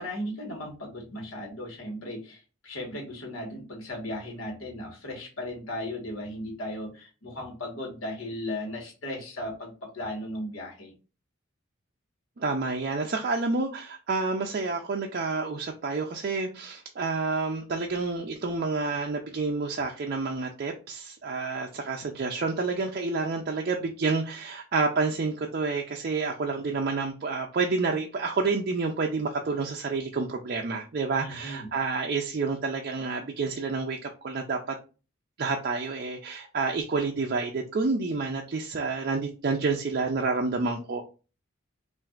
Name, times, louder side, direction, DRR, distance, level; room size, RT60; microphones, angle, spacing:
voice 1, 0.0-10.9 31.2-31.7, left 1 dB, 80° left, 0 dB, 1.5 m, -36 dB
voice 2, 12.4-34.8 35.4-41.0, right 4 dB, 45° right, 1 dB, 0.4 m, -29 dB
5.7 x 2.5 x 2.4 m, 0.34 s
head